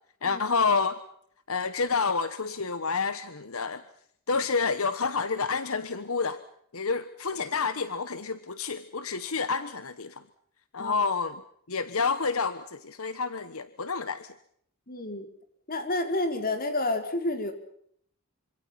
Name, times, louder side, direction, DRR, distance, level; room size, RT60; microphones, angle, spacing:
voice 1, 0.2-1.0 1.5-3.8 4.3-6.4 6.7-10.2 10.7-11.3 11.7-14.3, left 4 dB, 75° left, 1.2 m, -29 dB
voice 2, 14.9-15.3 15.7-17.5, left 2 dB, 40° left, 4.5 m, -29 dB
26.5 x 26.5 x 5.8 m
head